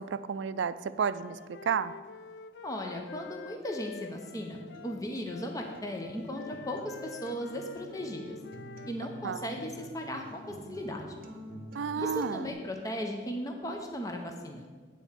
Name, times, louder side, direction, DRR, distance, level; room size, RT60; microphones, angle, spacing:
voice 1, 0.0-1.9 9.2-9.5 11.7-12.5, right 6 dB, 80° right, 15 dB, 0.4 m, -32 dB
Wind instrument woodwind instrument, 1.0-9.5, left 5 dB, 65° left, 0.3 m, -48 dB
voice 2, 2.6-4.6 4.8-8.4 8.9-11.2 11.9-14.7, equal, 20° left, 2 dB, 0.8 m, -37 dB
Acoustic guitar, 4.5-12.5, right 1 dB, 50° right, 0.8 m, -48 dB
9.2 x 4.4 x 7.3 m, 1.5 s
head